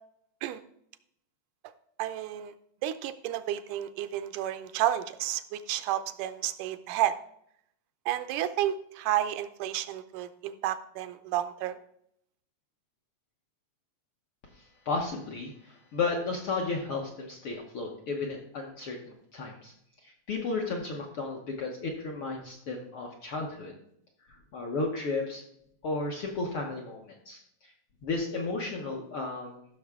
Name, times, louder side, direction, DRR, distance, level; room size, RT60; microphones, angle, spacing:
voice 1, 2.0-2.5 2.8-7.2 8.1-11.8, right 12 dB, 80° right, 11 dB, 2.0 m, -31 dB
voice 2, 14.5-19.0 19.3-19.7 20.0-23.8 24.5-25.4 25.8-27.7 28.0-29.7, left 3 dB, 65° left, 0 dB, 1.4 m, -33 dB
15.0 x 6.3 x 3.6 m, 0.73 s
omnidirectional pair, 3.7 m